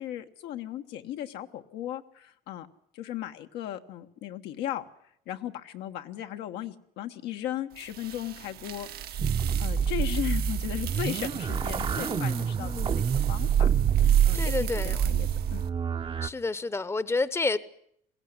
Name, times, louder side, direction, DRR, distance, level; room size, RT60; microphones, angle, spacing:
voice 1, 0.0-2.7 2.9-4.8 5.3-8.9 9.6-13.7 14.2-15.6, left 12 dB, 85° left, 6 dB, 1.4 m, -36 dB
sound 1, 7.8-15.7, right 10 dB, 65° right, 1.1 m, -29 dB
sound 2, 9.2-16.3, right 6 dB, 30° right, 0.8 m, -30 dB
voice 2, 11.9-13.1 14.3-15.1 16.2-17.6, left 3 dB, 15° left, 16 dB, 0.8 m, -30 dB
21.0 x 16.0 x 9.6 m, 0.70 s
cardioid pair, 110°, 17 cm